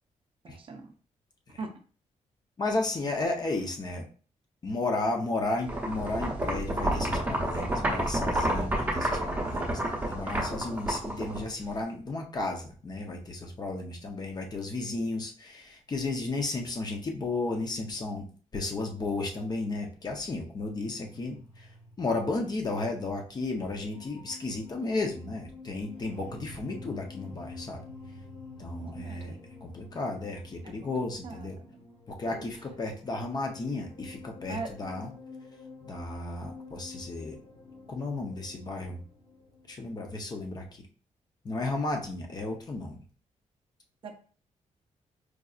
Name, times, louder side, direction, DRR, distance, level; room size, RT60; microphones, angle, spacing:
voice 1, 0.4-0.9 1.6-1.7 28.8-29.4 30.6-31.8 32.2-32.5 34.5-34.7 44.0-44.2, right 4 dB, 45° right, 5 dB, 0.5 m, -41 dB
voice 2, 2.6-4.0 4.6-18.2 18.5-21.7 22.0-27.8 28.6-29.3 29.6-31.6 32.1-35.1 35.8-37.4 37.9-39.0 39.7-40.6 41.4-43.0, left 2 dB, 30° left, 2 dB, 0.7 m, -33 dB
sound 1, 5.7-11.8, right 1 dB, 10° right, 0.9 m, -29 dB
sound 2, 20.9-39.7, left 3 dB, 55° left, 1.3 m, -49 dB
4.7 x 2.7 x 2.4 m, 0.40 s
wide cardioid pair, 160°, 13 cm